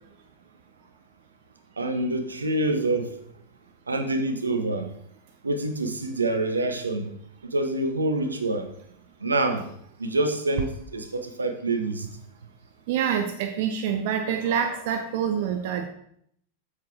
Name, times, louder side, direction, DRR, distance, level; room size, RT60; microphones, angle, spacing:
voice 1, 1.8-3.1 3.9-4.9 5.4-7.1 7.4-8.7 9.2-9.7 10.0-12.1, right 2 dB, 75° right, 6 dB, 1.2 m, -26 dB
voice 2, 12.9-15.9, right 8 dB, 50° right, 6 dB, 0.7 m, -26 dB
8.2 x 7.6 x 3.6 m, 0.68 s
figure-of-eight pair, 90°, 0 cm